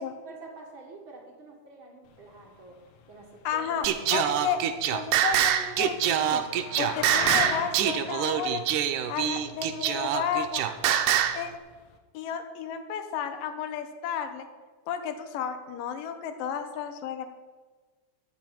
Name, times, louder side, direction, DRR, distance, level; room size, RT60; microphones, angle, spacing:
voice 1, 0.2-2.8 3.1-3.9 9.2-9.4, right 3 dB, 45° right, 0 dB, 2.3 m, -47 dB
sound 1, 2.1-12.0, left 7 dB, 65° left, 2.1 m, -42 dB
voice 2, 3.4-4.6 4.9-6.4 6.8-8.6 9.1-10.6 11.3-11.5 12.1-14.5 14.9-17.3, left 8 dB, 85° left, 7 dB, 2.7 m, -32 dB
Singing, 3.8-11.4, right 10 dB, 75° right, 2.2 m, -25 dB
13.0 x 6.2 x 9.1 m, 1.3 s
omnidirectional pair, 3.8 m